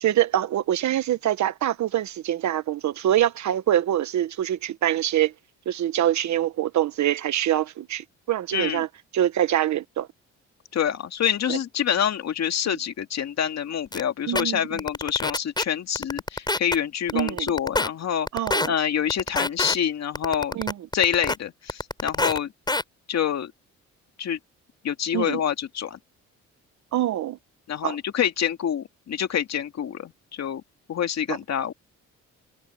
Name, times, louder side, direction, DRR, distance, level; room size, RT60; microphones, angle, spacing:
voice 1, 0.0-5.3 5.6-8.9 9.1-10.1 11.5-11.6 14.3-14.8 17.1-17.5 18.3-18.7 20.5-20.7 25.1-25.4 26.9-27.4 27.8-28.0 31.3-31.4, right 12 dB, 70° right, 1.3 m, -24 dB
voice 2, 8.5-8.8 10.7-20.6 20.9-22.5 23.1-23.5 24.2-24.4 24.8-26.0 27.7-30.6 30.9-31.7, left 9 dB, 60° left, 2.3 m, -26 dB
sound 1, 13.9-14.0 14.4-14.5 14.8-15.6 16.0-16.8 17.1-17.9 18.3-18.7 19.1-19.8 20.2-21.4 21.7-22.4 22.7-22.8, left 2 dB, 15° left, 7.8 m, -25 dB
cardioid pair, 90°, 30 cm